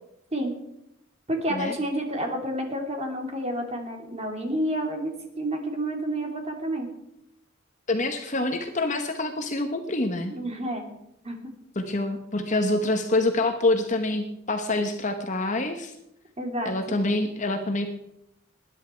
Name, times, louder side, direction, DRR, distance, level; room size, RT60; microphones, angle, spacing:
voice 1, 1.3-6.9 10.3-10.9 11.2-11.4 16.4-17.0, right 1 dB, 30° right, 3 dB, 3.0 m, -29 dB
voice 2, 7.9-10.3 11.8-15.9 16.6-17.9, left 2 dB, 35° left, 6 dB, 1.1 m, -26 dB
20.0 x 10.5 x 4.6 m, 0.80 s
head